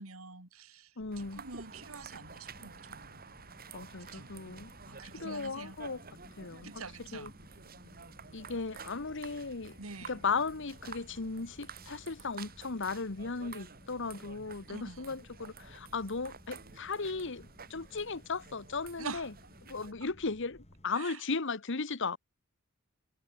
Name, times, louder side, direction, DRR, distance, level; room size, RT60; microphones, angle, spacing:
voice 1, 0.0-3.2 4.1-4.3 4.9-5.8 6.6-7.3 9.8-10.1 14.7-15.2 19.0-19.3 20.9-21.2, right 4 dB, 90° right, 3.1 m, -45 dB
voice 2, 1.0-1.4 3.7-4.7 5.1-6.0 6.3-6.7 7.0-7.3 8.3-9.8 10.1-19.3 19.7-22.2, left 4 dB, 60° left, 1.3 m, -36 dB
sound 1, 1.0-20.9, equal, 30° left, 4.5 m, -58 dB
sound 2, 1.1-19.9, right 5 dB, 45° right, 6.4 m, -51 dB
head